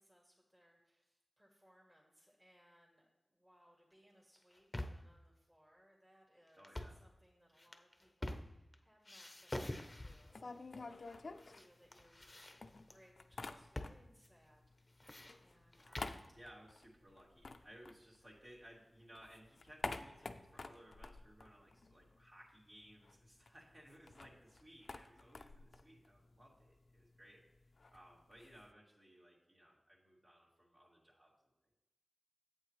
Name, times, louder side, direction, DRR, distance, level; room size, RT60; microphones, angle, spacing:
voice 1, 0.0-12.6 12.9-14.9 15.2-16.2, equal, 15° right, -3 dB, 2.1 m, -69 dB
sound 1, 4.4-5.1 6.6-7.1 7.6-8.7 9.0-10.3 11.1-11.7 11.9-13.0 13.7-14.0 14.2-14.3 14.8-16.3, left 1 dB, 25° left, 0.8 m, -46 dB
voice 2, 6.6-7.0 16.3-27.4 27.9-31.5, equal, 45° right, -5 dB, 2.7 m, -61 dB
sound 2, 10.1-12.3 12.6-14.2 14.5-18.7 19.0-22.3 22.5-22.6 22.9-28.7, left 3 dB, 65° left, 0.5 m, -50 dB
8.9 x 8.0 x 3.3 m, 0.97 s
cardioid pair, 55°, 0 cm